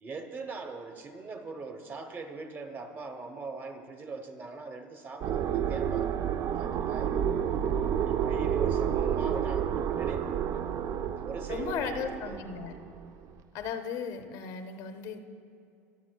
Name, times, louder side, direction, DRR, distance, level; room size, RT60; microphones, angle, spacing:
voice 1, 0.0-6.1 6.6-7.4 8.1-10.6 11.2-12.4, right 3 dB, 25° right, 6 dB, 0.8 m, -41 dB
sound 1, 5.2-13.1, right 9 dB, 40° right, 0.4 m, -30 dB
voice 2, 11.5-12.8 13.5-15.2, left 6 dB, 60° left, 8 dB, 0.7 m, -36 dB
21.5 x 7.6 x 2.2 m, 2.5 s
supercardioid pair, 125°, 8 cm